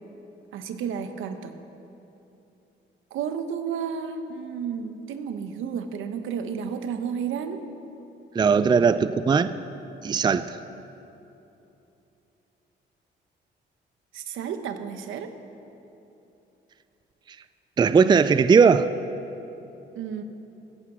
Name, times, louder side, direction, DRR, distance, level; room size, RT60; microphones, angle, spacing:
voice 1, 0.5-1.6 3.1-7.6 14.1-15.3 19.9-20.2, right 7 dB, 80° right, 8 dB, 1.0 m, -32 dB
voice 2, 8.3-9.6 10.0-10.6 17.8-19.0, right 5 dB, 20° right, 13 dB, 0.4 m, -19 dB
15.5 x 8.6 x 6.2 m, 2.9 s
cardioid pair, 90°, 20 cm